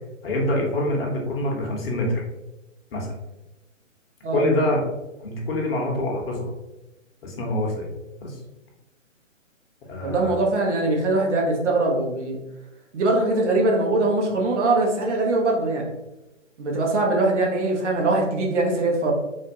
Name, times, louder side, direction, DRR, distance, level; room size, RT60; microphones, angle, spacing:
voice 1, 0.2-2.2 2.9-3.1 4.3-4.8 5.2-6.5 7.2-7.9 8.2-8.4 9.9-10.4, left 1 dB, 50° left, -1 dB, 1.0 m, -25 dB
voice 2, 10.0-12.4 12.9-15.9 16.6-19.1, right 2 dB, 65° right, -1 dB, 1.1 m, -22 dB
3.4 x 2.7 x 2.7 m, 0.99 s
figure-of-eight pair, 140°, 38 cm